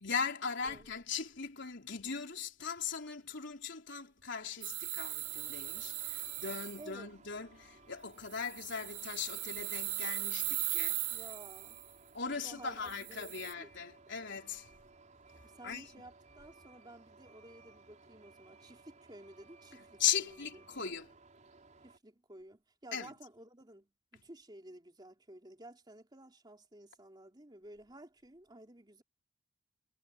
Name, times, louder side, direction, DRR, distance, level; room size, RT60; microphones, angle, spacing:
voice 1, 0.0-11.0 12.1-14.7 15.6-15.9 20.0-21.1 22.9-23.1, left 7 dB, 60° left, 4.1 m, -38 dB
sound 1, 4.6-6.8 8.3-11.8 12.9-13.5, right 16 dB, 65° right, 2.9 m, -38 dB
Truck, 5.2-22.0, right 3 dB, 40° right, 5.2 m, -60 dB
voice 2, 6.6-7.1 11.1-11.8 12.3-13.7 15.4-20.8 21.8-29.0, right 1 dB, 20° right, 3.1 m, -54 dB
head